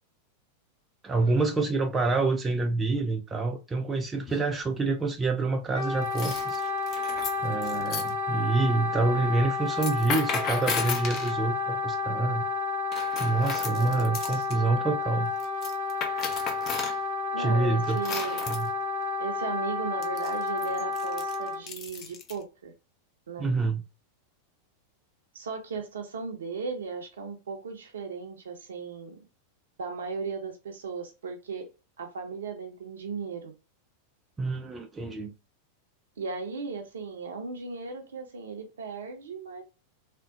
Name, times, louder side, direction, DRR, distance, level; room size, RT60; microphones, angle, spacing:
voice 1, 1.0-6.6 7.4-12.4 13.2-15.3 17.4-18.0 18.5-18.7 23.4-23.8 34.4-35.3, right 3 dB, 15° right, 0.4 m, -27 dB
sound 1, 4.3-4.7 6.0-8.1 9.7-11.4 12.9-14.6 15.4-17.0 17.8-18.7 20.0-22.4, left 6 dB, 35° left, 0.6 m, -35 dB
Wind instrument woodwind instrument, 5.7-21.6, left 3 dB, 65° left, 1.3 m, -31 dB
voice 2, 13.7-14.4 17.3-18.7 19.2-22.7 23.3-23.5 25.3-29.2 29.8-31.7 32.0-33.5 36.2-39.6, right 5 dB, 65° right, 0.5 m, -36 dB
3.5 x 2.2 x 2.4 m
figure-of-eight pair, 90°, 0 cm